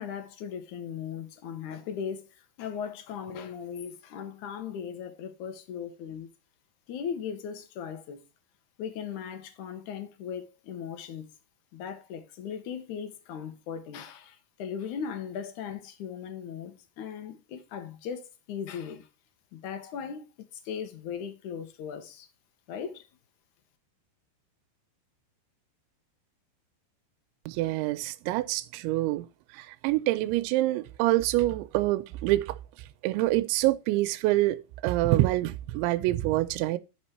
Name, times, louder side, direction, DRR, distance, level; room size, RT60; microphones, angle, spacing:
voice 1, 0.0-6.3 6.9-8.2 8.8-11.3 11.7-19.1 19.5-22.3 22.7-23.1, left 7 dB, 65° left, 2.1 m, -38 dB
voice 2, 27.5-29.3 29.5-32.6 33.0-36.8, right 17 dB, 85° right, 2.9 m, -26 dB
10.5 x 5.2 x 4.2 m
omnidirectional pair, 5.3 m